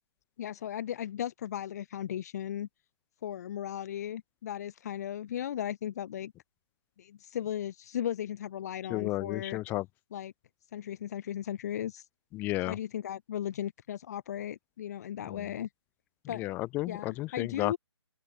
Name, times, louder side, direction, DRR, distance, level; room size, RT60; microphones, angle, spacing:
voice 1, 0.4-2.7 3.2-6.3 7.0-9.6 10.1-10.3 10.7-12.1 12.7-15.7 16.3-16.4 16.9-17.8, left 10 dB, 35° left, 8.0 m, -36 dB
voice 2, 8.9-9.9 12.3-12.8 15.3-15.5 16.3-17.7, left 19 dB, 15° left, 1.1 m, -33 dB
open air
figure-of-eight pair, 155°, 15 cm